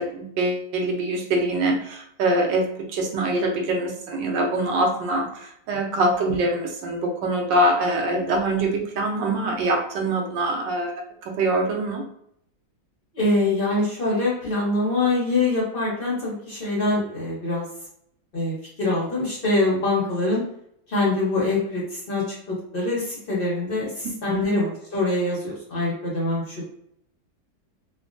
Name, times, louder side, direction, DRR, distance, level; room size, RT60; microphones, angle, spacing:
voice 1, 0.0-12.1 24.3-24.5, right 1 dB, 75° right, 2 dB, 1.3 m, -24 dB
voice 2, 13.1-17.7 18.3-20.4 20.9-26.7, left 2 dB, 55° left, -5 dB, 0.6 m, -24 dB
3.3 x 2.1 x 2.5 m, 0.72 s
omnidirectional pair, 2.0 m